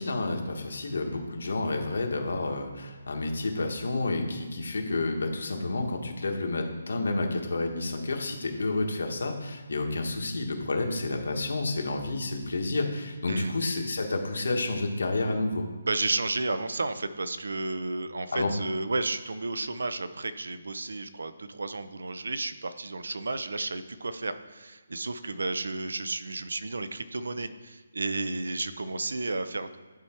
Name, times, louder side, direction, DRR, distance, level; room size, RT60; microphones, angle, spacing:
voice 1, 0.0-15.6 18.3-18.5, left 2 dB, 70° left, 3 dB, 1.5 m, -30 dB
voice 2, 15.8-29.8, right 2 dB, 90° right, 11 dB, 0.7 m, -32 dB
10.5 x 4.8 x 4.5 m, 1.3 s
hypercardioid pair, 180°, 0 cm